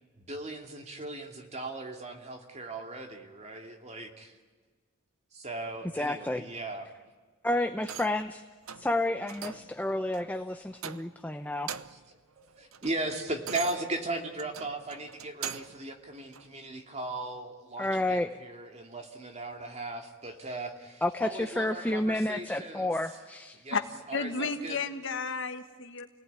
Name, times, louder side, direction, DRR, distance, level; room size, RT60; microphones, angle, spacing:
voice 1, 0.2-4.4 5.3-6.9 9.9-10.0 11.9-12.0 12.4-22.9 23.5-23.8 24.1-24.8, right 2 dB, 30° right, 4 dB, 2.5 m, -38 dB
voice 2, 5.9-6.4 7.4-8.4 8.8-11.7 17.8-18.3 21.0-23.6, left 1 dB, 10° left, 7 dB, 0.7 m, -30 dB
sound 1, 7.8-8.3 8.7-8.9 9.3-9.7 10.1-10.3 10.8-11.3 11.5-12.1 12.5-15.8 16.3-16.5, right 8 dB, 85° right, 0.9 m, -42 dB
voice 3, 24.1-26.1, left 4 dB, 60° left, 7 dB, 1.7 m, -32 dB
29.0 x 19.0 x 9.7 m, 1.4 s
head